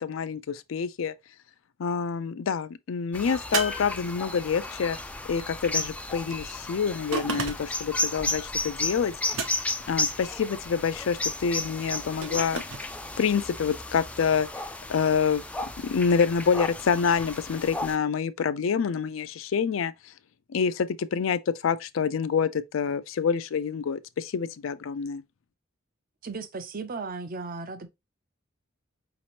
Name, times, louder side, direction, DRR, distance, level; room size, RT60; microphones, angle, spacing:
voice 1, 0.0-1.1 1.8-5.0 5.3-9.4 9.9-12.6 13.2-14.5 14.9-15.4 15.8-19.9 20.5-25.2, left 6 dB, 80° left, 0.4 m, -27 dB
sound 1, 3.1-18.0, left 2 dB, 5° left, 0.3 m, -34 dB
sound 2, 3.5-4.6 7.1-7.9 9.3-9.9 12.2-12.9, right 4 dB, 90° right, 0.9 m, -33 dB
voice 2, 26.2-27.9, right 4 dB, 45° right, 0.6 m, -35 dB
5.0 x 2.9 x 2.9 m
head